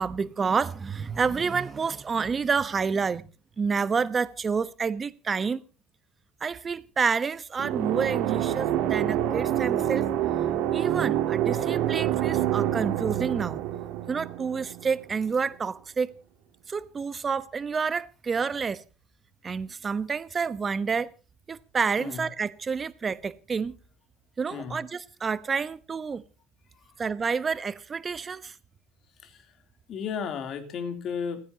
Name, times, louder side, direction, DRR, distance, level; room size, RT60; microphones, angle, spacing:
voice 1, 0.0-3.2 3.6-5.6 6.4-10.1 10.7-13.6 14.1-16.1 16.7-18.8 19.4-21.1 21.5-23.7 24.4-26.2 27.0-28.5, right 5 dB, 25° right, 1.0 m, -29 dB
sound 1, 7.6-15.2, right 12 dB, 70° right, 2.8 m, -27 dB
voice 2, 22.0-22.3 24.5-24.8 26.8-27.0 29.2-29.5 29.9-31.4, left 6 dB, 50° left, 3.3 m, -34 dB
29.5 x 10.0 x 2.9 m
supercardioid pair, 105°, 0 cm